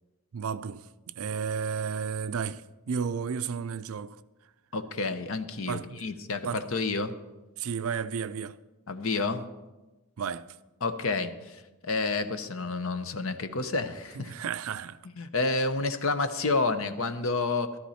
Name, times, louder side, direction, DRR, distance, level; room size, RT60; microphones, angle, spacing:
voice 1, 0.3-2.6 2.9-4.2 5.7-6.0 6.4-6.6 7.6-8.6 10.2-10.5 14.1-15.0, right 6 dB, 70° right, 0.5 m, -32 dB
voice 2, 4.7-7.1 8.9-9.4 10.8-11.6 11.8-14.3 15.2-17.7, left 3 dB, 65° left, 0.9 m, -29 dB
13.5 x 13.0 x 4.3 m
head